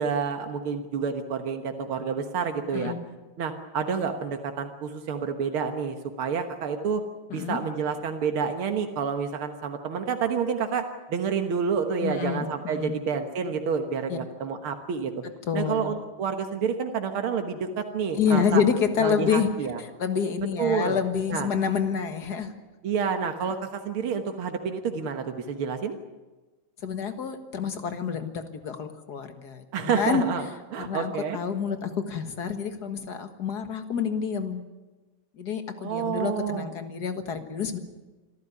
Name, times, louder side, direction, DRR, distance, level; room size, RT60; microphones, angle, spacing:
voice 1, 0.0-2.9 3.4-7.0 7.3-15.1 15.5-18.6 19.0-19.8 20.6-21.0 21.3-21.5 22.8-26.0 29.7-30.5 30.7-31.4 35.8-36.7, right 6 dB, 90° right, 6 dB, 2.2 m, -29 dB
voice 2, 12.0-12.9 14.1-14.2 15.4-15.9 18.2-19.5 19.8-22.5 26.8-30.3 30.9-34.6 35.4-37.8, left 6 dB, 50° left, 7 dB, 2.1 m, -28 dB
26.0 x 14.0 x 9.6 m, 1.2 s
omnidirectional pair, 2.3 m